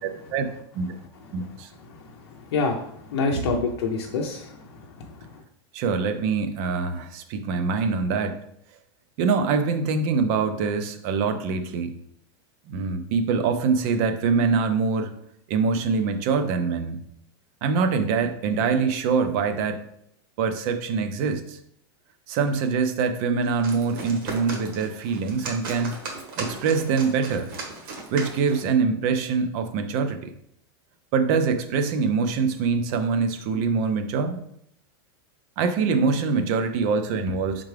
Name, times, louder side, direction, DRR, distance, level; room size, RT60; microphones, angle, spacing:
voice 1, 0.0-0.5 0.7-0.9 1.3-1.7 3.3-3.7 5.7-8.4 9.2-11.9 12.7-15.1 15.5-17.0 17.6-19.8 20.4-21.6 22.3-25.9 26.4-27.5 28.1-30.3 31.1-34.4 35.6-37.6, right 5 dB, 35° right, 8 dB, 0.4 m, -24 dB
voice 2, 2.5-4.6 5.0-5.1, left 4 dB, 85° left, 0 dB, 0.6 m, -26 dB
sound 1, 23.4-28.7, right 3 dB, 55° right, 1.2 m, -37 dB
4.5 x 3.6 x 3.3 m, 0.72 s
supercardioid pair, 175°, 13 cm